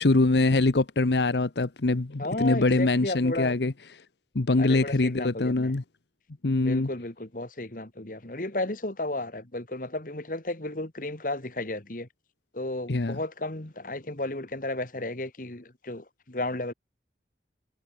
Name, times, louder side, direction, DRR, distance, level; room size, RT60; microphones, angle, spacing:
voice 1, 0.0-3.7 4.3-5.8 6.4-6.9 12.9-13.2, left 2 dB, 75° left, 0.9 m, -23 dB
voice 2, 2.2-3.7 4.6-5.8 6.5-12.1 12.5-16.7, left 2 dB, 50° left, 2.0 m, -33 dB
head